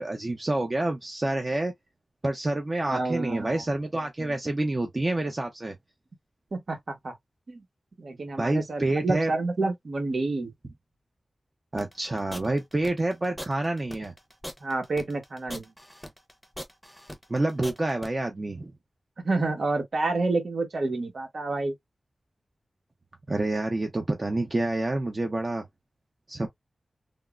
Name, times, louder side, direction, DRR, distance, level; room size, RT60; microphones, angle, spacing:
voice 1, 0.0-1.7 2.2-5.7 8.4-9.3 11.7-14.1 17.3-18.7 23.3-25.6 26.3-26.5, right 2 dB, 35° right, 0.6 m, -28 dB
voice 2, 2.9-3.6 6.5-7.1 7.5-7.6 8.0-10.5 14.6-15.7 19.2-21.7, right 3 dB, 70° right, 1.1 m, -29 dB
sound 1, 11.8-18.1, equal, ahead, 0.8 m, -40 dB
3.5 x 2.0 x 2.3 m
wide cardioid pair, 85°, 0 cm